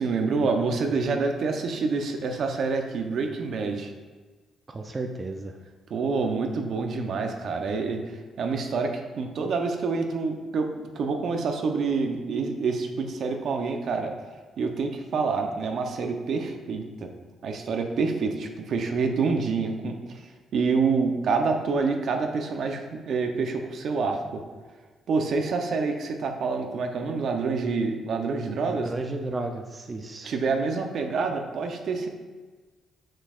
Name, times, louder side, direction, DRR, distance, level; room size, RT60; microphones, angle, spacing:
voice 1, 0.0-3.9 5.9-8.0 8.4-10.7 10.9-14.1 14.6-17.1 17.4-19.9 20.5-24.4 25.1-28.9 30.2-32.1, right 4 dB, 65° right, 4 dB, 0.8 m, -27 dB
voice 2, 4.7-5.5 28.6-30.3, right 2 dB, 25° right, 3 dB, 0.5 m, -33 dB
6.4 x 6.3 x 2.5 m, 1.3 s
cardioid pair, 90°, 0 cm